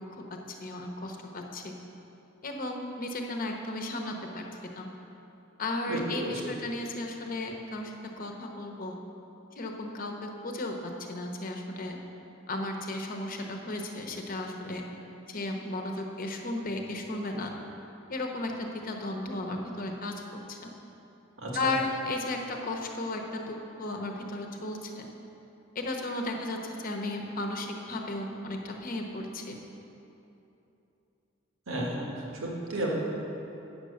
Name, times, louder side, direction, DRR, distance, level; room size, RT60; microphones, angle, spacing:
voice 1, 0.2-1.7 2.4-4.4 4.7-4.9 5.6-8.9 9.6-10.7 11.0-12.0 12.5-14.8 15.3-17.5 18.1-20.7 21.5-25.1 25.7-29.6, left 2 dB, 45° left, 2 dB, 0.9 m, -35 dB
voice 2, 5.9-6.5 21.4-21.7 31.7-33.0, right 1 dB, 90° right, -3 dB, 1.6 m, -33 dB
8.7 x 6.8 x 6.4 m, 3.0 s
head